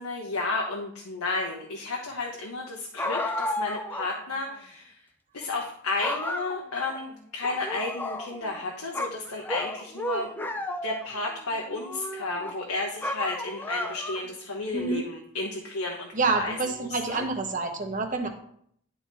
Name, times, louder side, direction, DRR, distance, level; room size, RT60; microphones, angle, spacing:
voice 1, 0.0-5.0 5.3-10.3 10.8-17.2, left 3 dB, 90° left, 0 dB, 1.1 m, -32 dB
sound 1, 3.0-4.1 4.5-4.6 5.4-5.7 6.0-7.0 7.4-8.6 8.9-11.2 11.7-12.5 13.0-14.3, left 1 dB, 10° left, 0.4 m, -33 dB
voice 2, 16.1-18.3, right 3 dB, 35° right, 4 dB, 0.9 m, -27 dB
10.5 x 3.9 x 4.1 m, 0.67 s
head